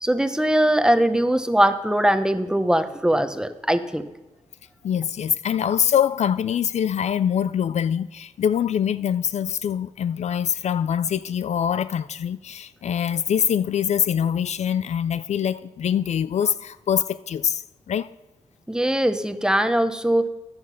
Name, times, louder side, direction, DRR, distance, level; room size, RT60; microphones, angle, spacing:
voice 1, 0.0-4.0 18.7-20.3, right 1 dB, 5° right, 0.9 m, -21 dB
voice 2, 4.8-18.1, left 8 dB, 65° left, 0.4 m, -24 dB
14.5 x 8.8 x 5.7 m
wide cardioid pair, 100°, 12 cm